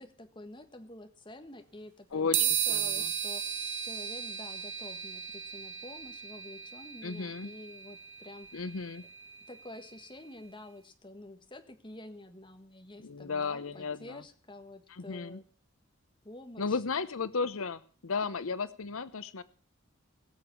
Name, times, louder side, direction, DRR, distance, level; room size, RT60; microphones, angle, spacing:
voice 1, 0.0-8.7 9.5-15.4 16.2-16.8, left 1 dB, 25° left, 6 dB, 1.7 m, -49 dB
voice 2, 2.1-3.1 7.0-7.5 8.5-9.0 13.0-14.2 14.9-15.4 16.6-19.4, left 4 dB, 85° left, 14 dB, 0.8 m, -34 dB
sound 1, 2.3-10.0, right 9 dB, 65° right, 1.2 m, -35 dB
21.0 x 7.1 x 7.0 m, 0.42 s
head